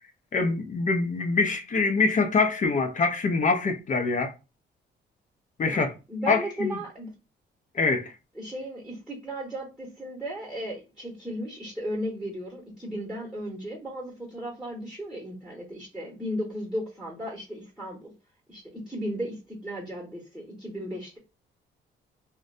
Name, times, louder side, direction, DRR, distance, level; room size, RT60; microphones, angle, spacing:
voice 1, 0.3-4.3 5.6-5.9 6.3-6.7 7.7-8.1, left 4 dB, 40° left, 0.6 m, -24 dB
voice 2, 5.6-7.1 8.3-18.1 18.5-21.2, equal, 5° right, 1.0 m, -35 dB
2.5 x 2.2 x 2.5 m
cardioid pair, 90°, 20 cm